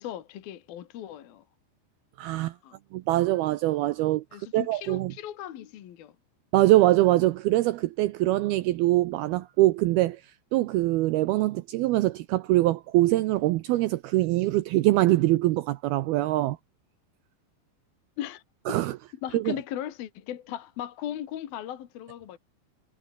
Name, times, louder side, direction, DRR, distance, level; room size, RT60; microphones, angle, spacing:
voice 1, 0.0-1.4 2.6-2.8 4.3-6.1 18.2-18.4 18.7-18.9 19.2-22.4, left 11 dB, 60° left, 3.2 m, -37 dB
voice 2, 2.2-2.5 2.9-5.1 6.5-10.2 10.5-16.6 18.7-19.0 19.3-19.5, right 17 dB, 85° right, 2.2 m, -23 dB
omnidirectional pair, 5.3 m